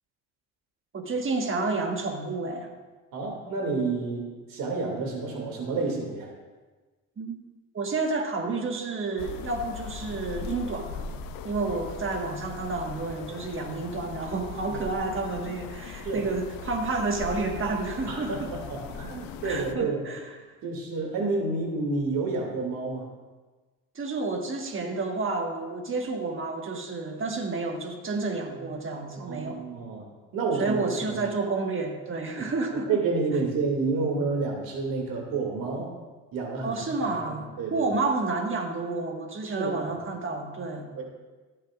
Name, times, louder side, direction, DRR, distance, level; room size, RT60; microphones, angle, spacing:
voice 1, 0.9-2.7 7.2-7.4 7.7-11.1 11.4-18.5 19.4-20.2 23.9-29.6 30.6-32.9 36.6-37.4 37.7-40.9, right 3 dB, 35° right, 3 dB, 1.6 m, -30 dB
voice 2, 3.1-4.2 4.5-6.3 14.7-14.8 16.0-16.2 18.1-20.0 20.6-23.1 29.2-30.1 30.3-31.2 32.4-32.5 32.9-35.9 36.3-37.9 39.4-40.0 40.9-41.0, right 3 dB, 75° right, 0 dB, 2.6 m, -29 dB
sound 1, 9.2-19.8, left 6 dB, 80° left, 0.7 m, -39 dB
15.0 x 8.6 x 2.5 m, 1.3 s
supercardioid pair, 80°, 34 cm